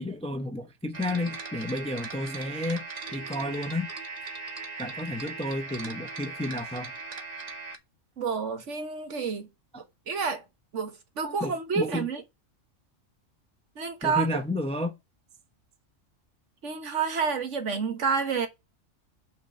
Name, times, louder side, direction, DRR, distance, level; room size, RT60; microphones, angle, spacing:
voice 1, 0.0-2.8 3.1-3.9 4.8-6.9 9.7-9.8 11.2-12.1 14.0-14.9, left 1 dB, 5° left, 0.5 m, -31 dB
sound 1, 0.9-7.8, right 4 dB, 35° right, 0.9 m, -39 dB
voice 2, 8.2-9.5 10.1-10.4 10.7-12.2 13.8-14.3 16.6-18.5, right 5 dB, 70° right, 1.6 m, -29 dB
5.8 x 4.5 x 6.2 m
omnidirectional pair, 1.3 m